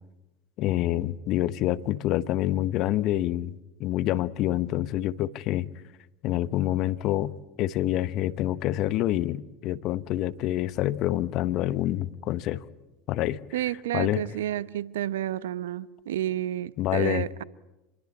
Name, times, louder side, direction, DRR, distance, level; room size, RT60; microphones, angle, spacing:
voice 1, 0.6-3.5 3.8-5.7 6.2-7.3 7.6-12.6 13.1-13.4 13.9-14.2 16.8-17.2, left 14 dB, 50° left, 1.0 m, -27 dB
voice 2, 13.5-17.4, right 12 dB, 75° right, 0.8 m, -30 dB
27.5 x 22.0 x 8.6 m
hypercardioid pair, 80°, 0 cm